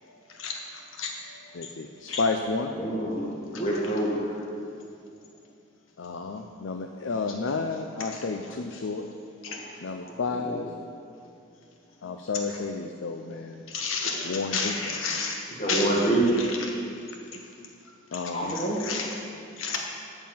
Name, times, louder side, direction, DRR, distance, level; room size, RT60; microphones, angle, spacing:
voice 1, 1.5-2.7 6.0-9.1 9.8-10.7 12.0-13.6 14.2-15.2 17.3-17.4 18.1-18.5, left 4 dB, 70° left, 5 dB, 0.5 m, -31 dB
voice 2, 2.8-4.3 9.6-9.7 10.4-10.6 15.6-16.3 18.3-18.8, right 1 dB, 30° left, -4 dB, 1.8 m, -27 dB
voice 3, 13.7-15.9 16.3-16.5 18.1-18.2 18.5-19.1 19.6-19.8, left 4 dB, 90° left, 0 dB, 1.2 m, -31 dB
8.8 x 5.5 x 7.7 m, 2.5 s
head